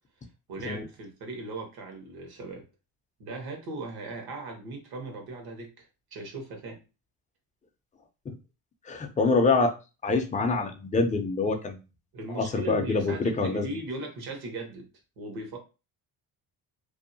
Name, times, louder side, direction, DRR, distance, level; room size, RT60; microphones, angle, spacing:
voice 1, 0.5-2.6 3.2-5.9 6.1-6.8 12.1-14.9 15.2-15.6, right 2 dB, 65° right, 2 dB, 1.1 m, -38 dB
voice 2, 8.9-9.7 10.0-11.8 12.3-13.7, left 3 dB, 20° left, 6 dB, 0.4 m, -25 dB
2.7 x 2.1 x 2.6 m, 0.30 s
cardioid pair, 110°, 39 cm